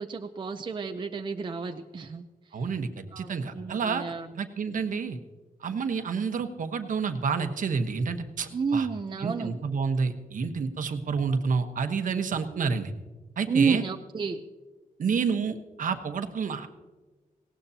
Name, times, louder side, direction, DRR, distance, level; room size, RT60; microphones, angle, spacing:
voice 1, 0.0-2.3 3.1-4.4 8.5-9.6 13.5-14.4, right 5 dB, 35° right, 5 dB, 0.6 m, -30 dB
voice 2, 2.5-4.0 4.4-5.2 5.6-8.9 9.2-12.9 13.4-13.8 15.0-16.7, right 5 dB, 65° right, 7 dB, 1.1 m, -29 dB
19.0 x 17.5 x 2.8 m, 1.3 s
wide cardioid pair, 145°, 14 cm